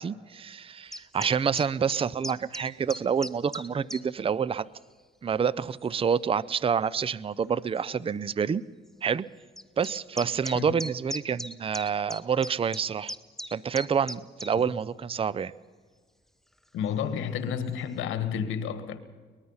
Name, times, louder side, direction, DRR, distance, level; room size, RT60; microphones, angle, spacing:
voice 1, 0.0-4.7 5.2-8.6 9.0-9.3 9.8-13.1 13.5-15.5, right 6 dB, 30° right, 20 dB, 0.5 m, -28 dB
sound 1, 0.9-4.0 4.7-4.9 5.8-5.9 7.0-7.1 7.4-7.5 7.8-7.9 9.6-14.5, equal, ahead, 1.0 m, -38 dB
voice 2, 16.7-19.0, left 8 dB, 90° left, 11 dB, 1.6 m, -31 dB
23.0 x 20.0 x 5.7 m, 1.5 s
cardioid pair, 90°, 20 cm